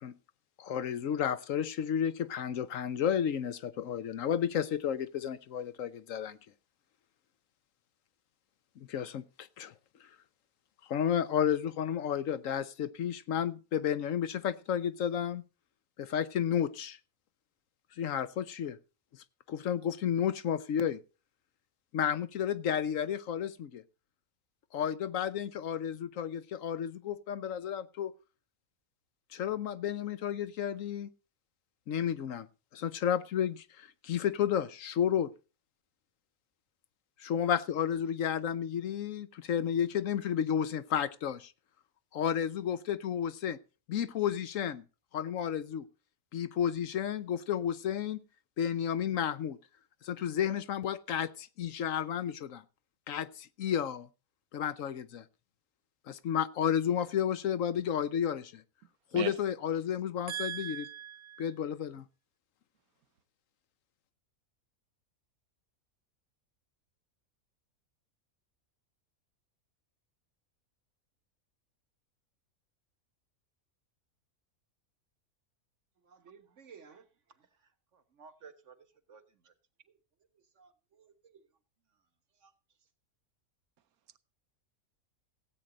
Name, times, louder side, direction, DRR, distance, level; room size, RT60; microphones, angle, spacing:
voice 1, 0.6-6.4 8.8-9.7 10.9-15.4 16.0-17.0 18.0-18.8 19.5-21.0 21.9-23.8 24.7-28.1 29.3-31.1 31.9-32.5 32.7-35.3 37.2-41.5 42.1-43.6 43.9-44.8 45.1-45.9 46.3-48.2 48.6-49.6 50.0-52.6 53.1-54.1 54.5-55.2 56.1-58.6 59.1-60.8 61.4-62.0, left 9 dB, 65° left, 1.1 m, -32 dB
voice 2, 60.3-61.5, right 10 dB, 80° right, 1.3 m, -38 dB
voice 3, 76.0-77.1 77.4-77.5 77.9-78.8 79.1-79.5 79.9-80.0 80.5-81.5 82.4-82.5, right 6 dB, 55° right, 1.6 m, -56 dB
16.5 x 8.9 x 3.9 m
omnidirectional pair, 1.5 m